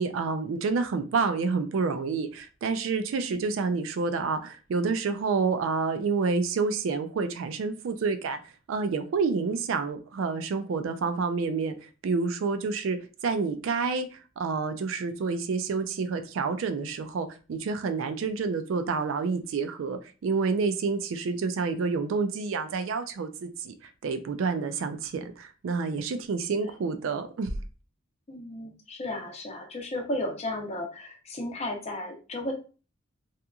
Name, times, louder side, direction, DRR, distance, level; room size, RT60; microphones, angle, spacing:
voice 1, 0.0-27.5, right 4 dB, 75° right, 0.3 m, -29 dB
voice 2, 28.3-32.5, left 1 dB, 30° left, 0.6 m, -34 dB
2.8 x 2.4 x 2.3 m
head